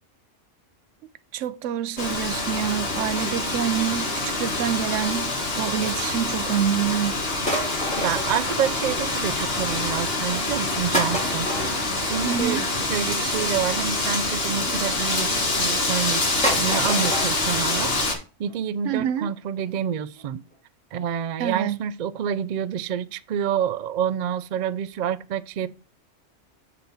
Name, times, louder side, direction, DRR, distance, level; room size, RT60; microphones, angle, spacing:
voice 1, 1.3-7.2 12.2-12.7 18.8-19.3 21.4-21.8, right 9 dB, 85° right, 0.9 m, -27 dB
Wind, 2.0-18.1, left 2 dB, 55° left, 1.9 m, -26 dB
sound 1, 7.5-9.2 9.5-9.9 10.5-10.6 10.9-14.5 15.2-15.8 16.1-16.2 16.4-17.3 17.6-17.7 18.0-18.1 18.5-18.6 18.8-18.9 19.3-19.4 19.6-19.7 20.2-20.3 20.5-20.6, equal, 5° left, 3.4 m, -30 dB
voice 2, 8.0-20.4 20.9-25.7, right 8 dB, 65° right, 0.4 m, -28 dB
8.2 x 4.2 x 4.0 m
omnidirectional pair, 1.2 m